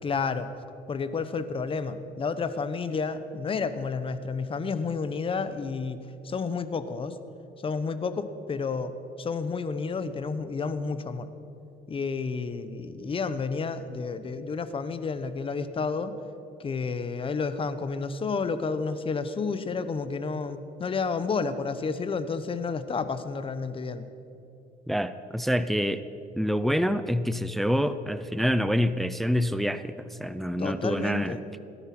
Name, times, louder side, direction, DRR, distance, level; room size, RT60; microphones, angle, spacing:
voice 1, 0.0-0.5 0.9-6.0 6.2-7.2 7.6-8.9 9.2-11.3 11.9-16.1 16.6-24.1 30.6-31.4, left 4 dB, 30° left, 12 dB, 1.0 m, -30 dB
voice 2, 24.9-26.0 26.3-29.9 30.2-31.4, equal, ahead, 12 dB, 0.5 m, -26 dB
17.5 x 12.5 x 6.0 m, 2.9 s
cardioid pair, 110°, 17 cm